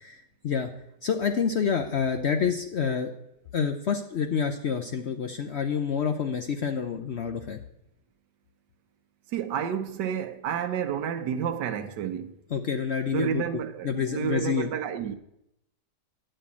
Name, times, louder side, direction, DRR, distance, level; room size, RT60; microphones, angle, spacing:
voice 1, 1.0-3.1 3.5-7.6 12.5-13.4 13.8-14.7, left 6 dB, 60° left, 0.7 m, -28 dB
voice 2, 9.3-12.4 13.1-15.2, right 8 dB, 90° right, 1.4 m, -30 dB
10.0 x 5.5 x 8.4 m
omnidirectional pair, 1.8 m